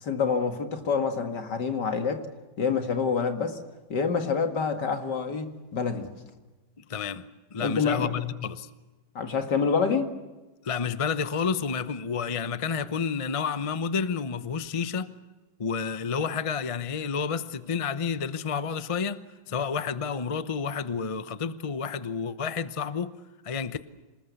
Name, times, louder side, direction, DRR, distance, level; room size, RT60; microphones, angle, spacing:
voice 1, 0.0-2.3 2.6-3.6 3.9-6.1 7.6-8.1 9.1-10.1, left 5 dB, 60° left, 2.6 m, -27 dB
voice 2, 6.8-7.2 7.5-8.7 10.6-15.2 15.6-23.2 23.4-23.8, left 6 dB, 40° left, 0.4 m, -30 dB
27.0 x 20.0 x 8.2 m
omnidirectional pair, 2.0 m